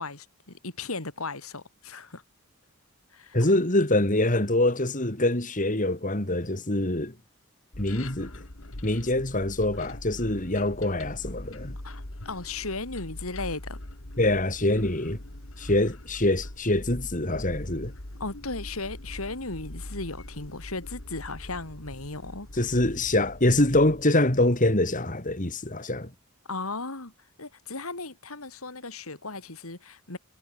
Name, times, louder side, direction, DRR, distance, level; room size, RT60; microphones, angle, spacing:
voice 1, 0.0-2.2 3.1-3.6 11.8-13.8 18.2-22.5 26.5-27.1 27.4-30.2, left 3 dB, 85° left, 3.6 m, -36 dB
voice 2, 3.3-7.1 7.8-8.3 8.8-11.7 14.2-15.2 15.6-17.9 22.6-26.1, left 1 dB, 35° left, 3.1 m, -24 dB
sound 1, 7.7-24.0, left 1 dB, 65° left, 2.6 m, -42 dB
head